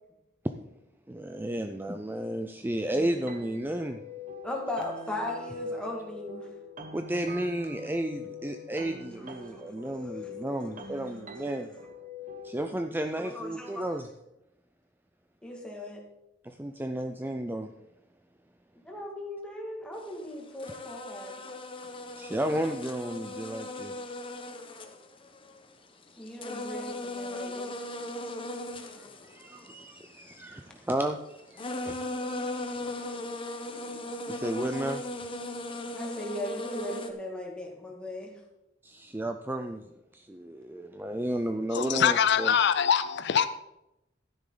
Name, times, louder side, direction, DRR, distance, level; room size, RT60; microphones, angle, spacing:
voice 1, 1.1-4.0 6.9-11.7 12.4-14.1 16.4-17.7 20.6-20.7 22.2-24.0 29.0-32.0 33.0-33.2 34.3-35.0 38.8-42.5, right 1 dB, 10° right, 0.5 m, -33 dB
sound 1, 3.0-12.7, left 3 dB, 40° right, 1.0 m, -44 dB
voice 2, 4.4-6.5 9.4-9.6 10.0-10.3 11.4-11.5 13.2-13.9 15.4-16.0 18.9-21.4 26.2-27.7 35.9-38.4, left 1 dB, 5° left, 2.2 m, -38 dB
sound 2, 20.1-20.2 20.6-25.6 26.0-30.4 31.3-31.4 31.6-37.1, left 1 dB, 30° left, 1.1 m, -37 dB
voice 3, 41.7-43.5, left 8 dB, 60° left, 0.5 m, -23 dB
12.5 x 10.0 x 4.0 m
head